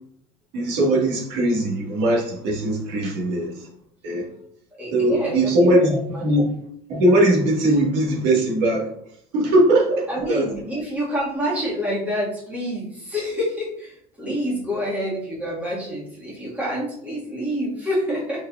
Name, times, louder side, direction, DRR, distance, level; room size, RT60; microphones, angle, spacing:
voice 1, 0.5-3.7 4.0-4.3 4.9-6.5 6.9-8.9 9.3-10.8 14.2-14.3, right 1 dB, 75° right, -2 dB, 1.7 m, -20 dB
voice 2, 4.8-5.7 6.1-6.2 10.1-18.5, equal, 10° right, -7 dB, 1.7 m, -27 dB
4.9 x 4.4 x 2.4 m, 0.69 s
cardioid pair, 165°, 17 cm